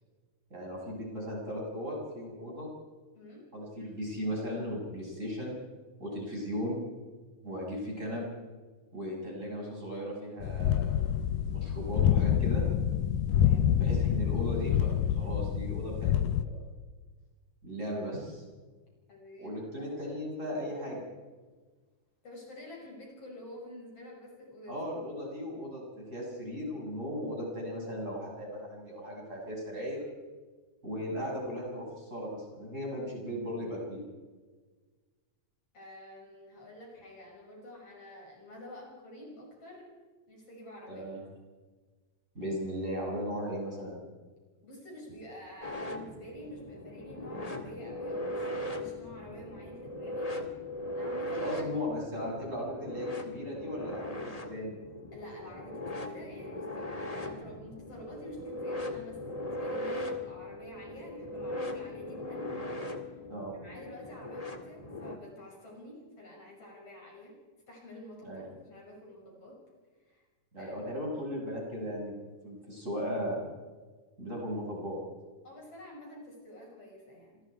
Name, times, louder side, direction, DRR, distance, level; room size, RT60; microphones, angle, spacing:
voice 1, 0.5-2.7 3.5-5.6 6.0-6.8 7.4-8.3 8.9-11.1 11.4-12.6 13.7-16.5 17.6-18.4 19.4-21.0 24.7-30.0 30.8-34.0 40.9-41.2 42.3-44.0 51.4-54.8 63.3-63.5 68.2-68.4 70.5-72.1 72.4-73.4 74.2-75.0, equal, 20° right, -3 dB, 6.9 m, -37 dB
voice 2, 3.2-3.5 6.1-6.2 13.3-13.7 19.1-20.5 22.2-24.8 35.7-39.9 40.3-41.0 44.6-50.3 50.9-51.8 55.1-63.0 63.5-67.4 67.7-69.6 70.0-70.3 70.6-70.8 75.4-77.4, left 1 dB, 45° left, -1 dB, 7.1 m, -48 dB
sound 1, 10.4-16.5, left 10 dB, 80° left, 2.3 m, -27 dB
sound 2, 45.6-65.2, left 1 dB, 15° left, 1.3 m, -39 dB
27.5 x 21.5 x 4.8 m, 1.4 s
omnidirectional pair, 3.7 m